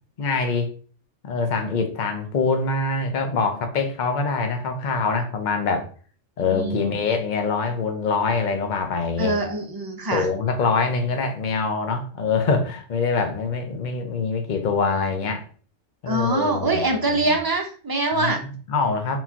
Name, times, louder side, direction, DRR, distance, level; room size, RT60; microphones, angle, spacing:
voice 1, 0.2-0.7 1.2-5.9 6.4-9.3 10.1-15.4 16.0-17.3 18.1-19.2, left 4 dB, 45° left, 0.8 m, -24 dB
voice 2, 6.5-6.9 9.2-10.3 16.1-18.4, right 2 dB, 25° right, 0.6 m, -24 dB
4.7 x 3.8 x 2.8 m
omnidirectional pair, 1.2 m